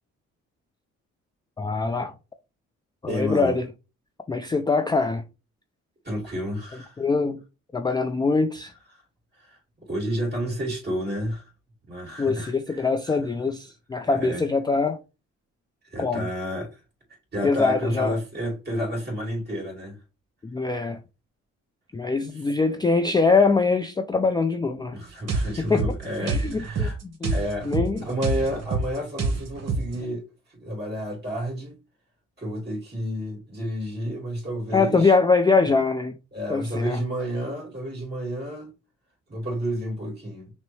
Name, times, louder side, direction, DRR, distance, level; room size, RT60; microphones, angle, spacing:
voice 1, 1.6-2.1 3.0-3.7 4.3-5.2 7.0-7.4 7.7-8.7 12.2-15.0 16.0-16.3 17.4-18.1 20.4-21.0 21.9-25.0 25.6-25.8 26.2-28.0 34.7-36.2 36.5-37.0, left 4 dB, 15° left, 0.3 m, -23 dB
voice 2, 3.1-3.5 6.0-7.0 9.4-9.6 9.9-11.4 11.9-13.2 14.0-14.4 15.9-16.8 17.3-20.0 24.9-27.0 27.3-27.7 28.0-30.2 30.5-31.8 32.4-35.1 36.3-38.7 39.3-40.5, equal, 35° right, 2.5 m, -31 dB
sound 1, 25.3-30.0, right 3 dB, 55° right, 1.2 m, -27 dB
5.9 x 2.1 x 3.2 m
cardioid pair, 90°, 30 cm